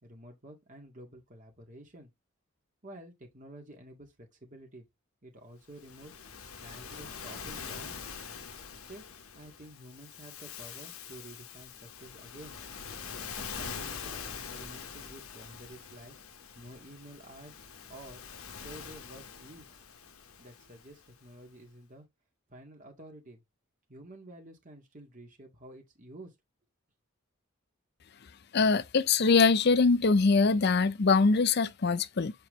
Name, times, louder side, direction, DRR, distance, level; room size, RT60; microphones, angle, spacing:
voice 1, 0.0-2.1 2.8-4.8 5.2-6.2 6.6-8.0 8.9-9.1 9.3-12.6 13.4-16.1 16.6-17.6 17.9-18.2 18.6-19.8 20.4-22.1 22.5-23.4 23.9-26.3, right 1 dB, 35° right, 1.9 m, -50 dB
Waves surf, 5.7-21.2, left 6 dB, 85° left, 1.3 m, -44 dB
voice 2, 28.5-32.3, left 4 dB, 50° left, 0.5 m, -23 dB
7.1 x 4.3 x 3.2 m
head